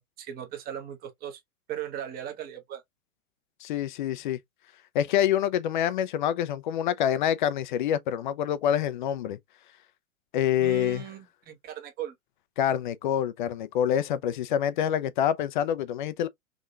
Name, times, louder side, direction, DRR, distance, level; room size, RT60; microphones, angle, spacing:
voice 1, 0.0-1.4 1.7-2.8 10.6-12.2, right 10 dB, 20° right, 0.9 m, -38 dB
voice 2, 3.6-4.4 4.9-9.4 10.3-11.0 12.6-16.3, left 10 dB, 35° left, 0.4 m, -26 dB
3.7 x 2.9 x 2.3 m
figure-of-eight pair, 105°, 43 cm